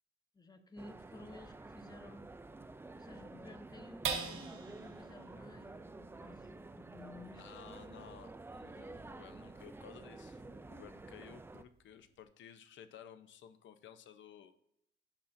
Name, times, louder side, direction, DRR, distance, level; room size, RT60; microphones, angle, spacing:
voice 1, 0.3-2.3 3.0-4.1 4.3-7.4, left 2 dB, 20° left, 7 dB, 0.9 m, -54 dB
sound 1, 0.8-11.6, right 2 dB, 10° right, 0.4 m, -50 dB
sound 2, 4.0-10.7 11.2-11.3 11.7-12.2, right 6 dB, 85° right, 1.1 m, -46 dB
voice 2, 7.3-14.5, left 9 dB, 70° left, 9 dB, 0.8 m, -55 dB
11.5 x 4.2 x 2.7 m, 0.77 s
cardioid pair, 90°, 20 cm